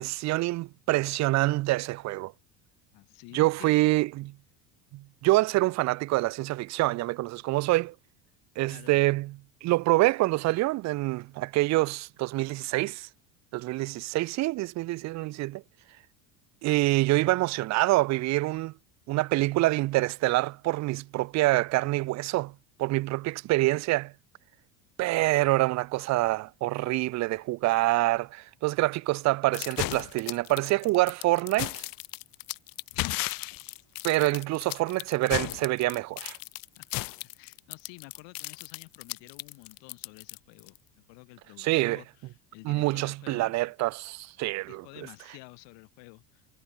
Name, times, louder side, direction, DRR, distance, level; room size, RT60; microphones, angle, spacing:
voice 1, 0.0-2.3 3.3-4.3 4.9-7.9 8.6-9.3 9.6-13.1 13.5-15.6 16.6-18.7 19.1-22.5 22.8-24.1 25.0-31.8 34.0-36.4 41.6-42.0 42.7-44.8, right 19 dB, 40° right, 0.4 m, -26 dB
voice 2, 2.9-3.9 8.7-8.9 36.8-40.8 41.1-43.5 44.7-46.5, left 28 dB, 70° left, 2.9 m, -50 dB
sound 1, 29.5-40.8, left 20 dB, 50° left, 0.7 m, -35 dB
supercardioid pair, 100°, 45 cm